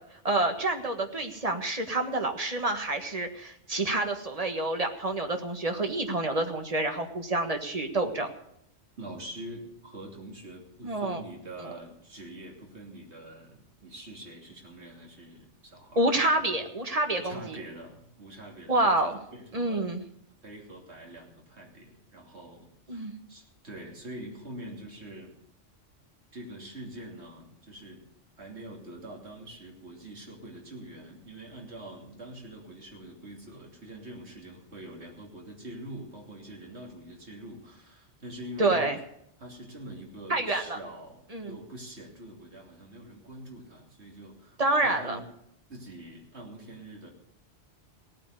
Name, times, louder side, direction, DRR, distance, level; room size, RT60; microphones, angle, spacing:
voice 1, 0.2-8.3 10.8-11.2 11.6-11.7 15.9-17.6 18.7-19.2 19.5-20.0 22.9-23.1 38.6-39.0 40.3-40.8 41.3-41.6 44.6-45.2, right 2 dB, 30° right, 5 dB, 1.7 m, -28 dB
voice 2, 9.0-16.1 16.4-16.6 17.1-19.9 20.4-25.3 26.3-28.0 28.4-38.9 39.4-45.3 45.7-47.1, right 1 dB, 65° right, 0 dB, 3.4 m, -44 dB
17.5 x 9.1 x 6.8 m, 0.74 s
omnidirectional pair, 1.2 m